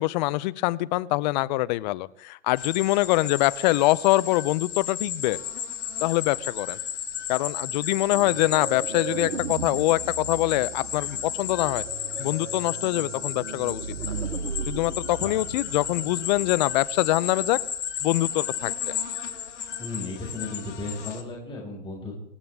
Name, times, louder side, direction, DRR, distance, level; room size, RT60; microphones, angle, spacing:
voice 1, 0.0-5.4 6.0-6.8 7.3-11.8 12.2-13.8 14.7-17.6 18.0-19.0, left 19 dB, 35° left, 17 dB, 0.7 m, -24 dB
sound 1, 2.6-21.2, left 8 dB, 65° left, 2.9 m, -34 dB
sound 2, 8.1-16.9, right 5 dB, 90° right, 1.5 m, -37 dB
voice 2, 19.8-22.2, left 2 dB, 15° left, -3 dB, 5.7 m, -35 dB
26.0 x 14.5 x 3.6 m, 0.75 s
hypercardioid pair, 120°, 37 cm